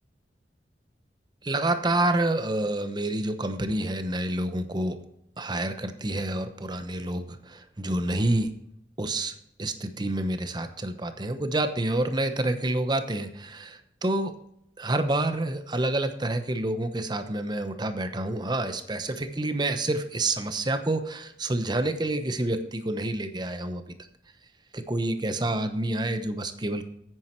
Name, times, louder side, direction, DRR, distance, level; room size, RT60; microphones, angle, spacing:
voice 1, 1.4-5.0 5.4-8.5 9.0-14.3 14.8-23.8 24.7-26.8, right 1 dB, 25° right, 9 dB, 0.9 m, -28 dB
9.4 x 9.3 x 4.5 m, 0.73 s
head